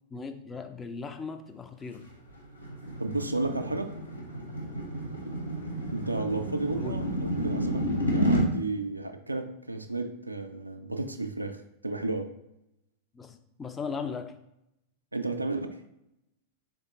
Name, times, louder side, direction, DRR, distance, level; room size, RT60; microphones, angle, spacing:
voice 1, 0.1-2.1 6.7-7.0 13.1-14.3, left 5 dB, 15° left, 7 dB, 0.3 m, -38 dB
sound 1, 2.0-8.5, equal, 80° left, 0.7 m, -30 dB
voice 2, 3.0-3.9 5.9-11.6 11.8-12.3 15.1-15.8, right 2 dB, 85° right, 6 dB, 0.3 m, -32 dB
3.5 x 3.5 x 2.8 m, 0.84 s
figure-of-eight pair, 90°, 0 cm